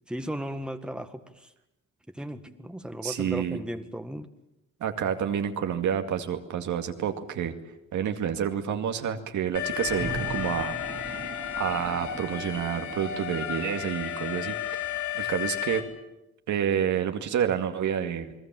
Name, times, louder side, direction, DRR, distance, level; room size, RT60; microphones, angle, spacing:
voice 1, 0.0-1.5 2.1-4.3, equal, 5° right, 7 dB, 1.7 m, -36 dB
voice 2, 3.0-3.6 4.8-7.5 7.9-10.8 11.0-11.2 11.6-14.5 15.1-15.8 16.5-18.3, right 8 dB, 75° right, 6 dB, 2.3 m, -29 dB
Alarm, 9.5-15.8, left 11 dB, 75° left, 3.1 m, -33 dB
sound 1, 9.7-13.5 14.7-14.8, right 4 dB, 30° right, 2.5 m, -40 dB
29.5 x 19.5 x 7.7 m, 0.91 s
cardioid pair, 90°, 30 cm